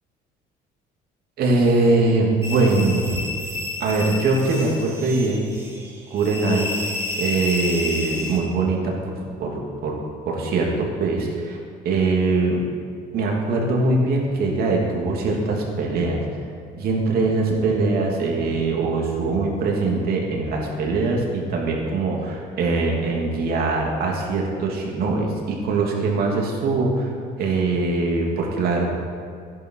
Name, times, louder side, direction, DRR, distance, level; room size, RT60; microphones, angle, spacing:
voice 1, 1.4-3.2 3.8-5.5 6.1-6.7 7.2-10.0 10.3-11.6 11.8-12.6 13.1-16.2 16.8-27.1 27.4-28.9, right 3 dB, 65° right, -1 dB, 2.9 m, -22 dB
sound 1, 2.4-8.4, left 3 dB, 15° right, 3.3 m, -30 dB
15.5 x 10.5 x 4.8 m, 2.3 s
cardioid pair, 110°, 17 cm